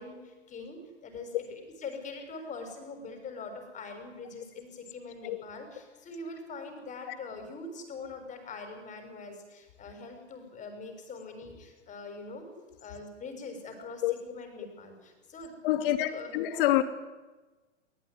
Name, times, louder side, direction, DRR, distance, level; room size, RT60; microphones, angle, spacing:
voice 1, 0.0-12.5 12.8-15.6 15.8-16.3, left 3 dB, 20° left, 6 dB, 6.5 m, -43 dB
voice 2, 15.6-16.8, left 14 dB, 45° left, 9 dB, 2.9 m, -27 dB
23.5 x 20.5 x 9.7 m, 1.2 s
hypercardioid pair, 130°, 37 cm